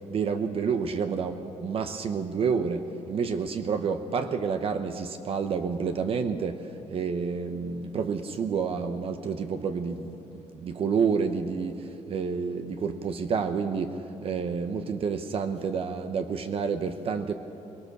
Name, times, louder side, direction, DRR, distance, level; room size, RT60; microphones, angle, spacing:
voice 1, 0.0-17.3, right 5 dB, 50° right, 8 dB, 1.0 m, -29 dB
22.5 x 21.0 x 6.8 m, 2.9 s
cardioid pair, 165°, 13 cm